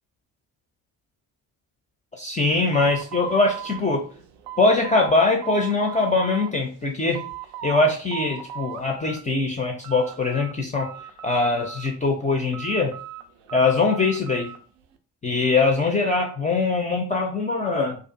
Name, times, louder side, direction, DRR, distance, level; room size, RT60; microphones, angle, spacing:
voice 1, 2.1-4.0 4.6-7.2 7.6-10.9 11.2-12.9 13.5-14.5 15.2-18.0, left 3 dB, 15° left, 1 dB, 0.4 m, -22 dB
sound 1, 2.7-5.2 5.4-6.5 6.9-7.8 8.1-9.2 9.5-10.5 10.8-12.1 12.5-14.6, right 11 dB, 75° right, 0.5 m, -38 dB
2.4 x 2.4 x 2.5 m, 0.40 s
figure-of-eight pair, 45°, 49 cm